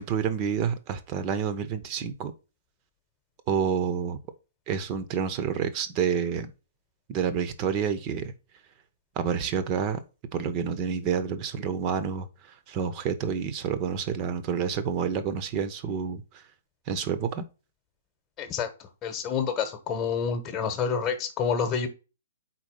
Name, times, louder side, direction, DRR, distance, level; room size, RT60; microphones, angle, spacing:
voice 1, 0.0-2.3 3.5-4.2 4.7-6.5 7.1-8.3 9.2-10.0 10.3-12.3 12.7-16.2 16.9-17.4, right 7 dB, 35° right, 0.8 m, -28 dB
voice 2, 18.4-18.7 19.0-21.9, left 6 dB, 20° left, 1.1 m, -28 dB
4.4 x 4.1 x 5.4 m
figure-of-eight pair, 120°, 0 cm